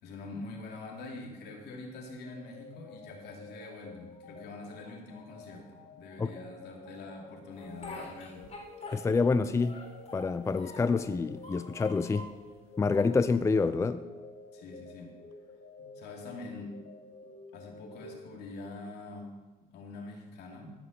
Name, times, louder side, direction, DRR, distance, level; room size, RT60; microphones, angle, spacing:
voice 1, 0.0-8.5 14.5-15.1 15.8-16.7 17.5-19.3 19.7-20.7, left 2 dB, 80° left, 1 dB, 2.9 m, -45 dB
sound 1, 2.2-18.8, left 3 dB, 55° left, 2.6 m, -51 dB
Speech, 7.6-9.3 9.6-11.0 11.4-12.4 12.9-13.7, left 2 dB, 40° left, 3.7 m, -46 dB
voice 2, 8.9-9.8 10.1-12.3 12.8-14.0, left 4 dB, 15° left, 12 dB, 0.5 m, -27 dB
14.5 x 6.2 x 6.7 m, 1.2 s
cardioid pair, 110°, 17 cm